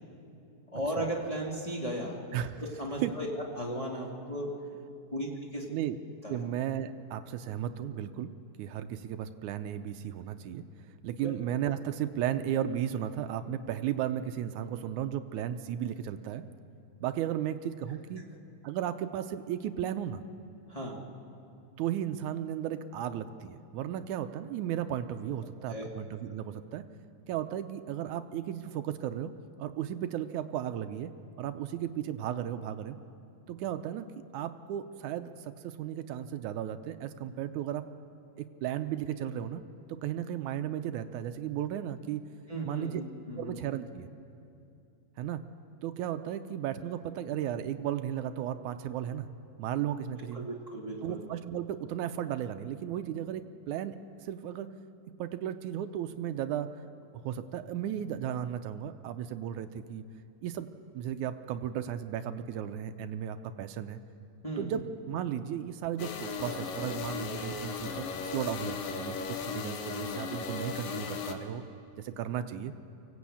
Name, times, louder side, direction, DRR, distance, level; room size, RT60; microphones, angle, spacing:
voice 1, 0.7-2.2 2.8-3.3 3.5-4.5 5.1-5.6 6.2-6.4 11.2-11.3 20.7-21.0 25.7-25.9 42.5-43.6 50.3-51.2 64.4-64.8, right 1 dB, 15° left, -3 dB, 1.3 m, -35 dB
voice 2, 6.3-8.3 8.6-10.6 11.0-16.4 17.0-18.2 18.6-20.2 21.8-26.8 27.3-29.3 29.6-31.1 31.4-33.0 33.5-34.1 34.3-37.9 38.4-39.6 39.9-42.2 42.6-43.0 43.4-44.1 45.2-45.4 45.8-49.3 49.6-50.5 51.0-54.0 54.2-54.7 55.2-56.7 57.2-60.0 60.4-60.7 60.9-64.0 64.6-68.1 68.3-71.6 72.0-72.7, right 10 dB, 75° right, 9 dB, 1.9 m, -35 dB
sound 1, 66.0-71.3, left 5 dB, 80° left, 2.9 m, -36 dB
24.0 x 17.0 x 8.5 m, 2.6 s
omnidirectional pair, 4.0 m